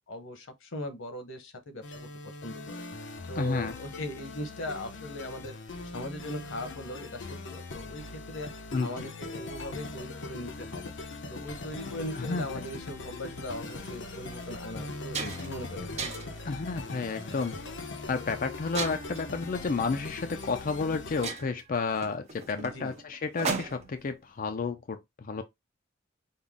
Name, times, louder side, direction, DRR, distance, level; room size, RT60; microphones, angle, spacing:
voice 1, 0.0-2.1 2.4-2.8 3.3-5.6 5.9-8.5 8.8-10.9 11.3-16.1 22.5-23.0, left 1 dB, 90° left, 1.0 m, -39 dB
sound 1, 1.8-21.3, left 3 dB, 65° left, 0.8 m, -41 dB
voice 2, 3.4-3.7 8.7-9.1 12.2-12.6 16.4-17.5 18.1-25.4, left 4 dB, 45° left, 0.5 m, -31 dB
sound 2, 13.7-13.9 14.4-14.5 14.8-15.6 16.0-16.4 17.1-17.4 18.7-19.3 20.4-20.5 20.8-20.9 21.2-24.0, right 4 dB, 35° right, 0.8 m, -36 dB
5.4 x 2.1 x 3.6 m
head